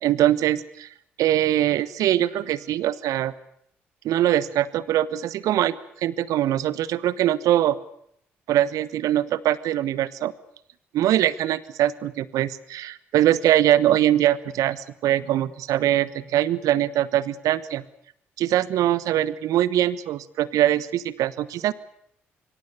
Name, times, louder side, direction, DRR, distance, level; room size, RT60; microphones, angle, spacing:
voice 1, 0.0-0.9 1.2-3.3 4.0-7.8 8.5-10.3 10.9-17.8 18.4-21.7, right 12 dB, 65° right, 17 dB, 1.2 m, -22 dB
25.0 x 25.0 x 7.0 m, 0.71 s
figure-of-eight pair, 45°, 6 cm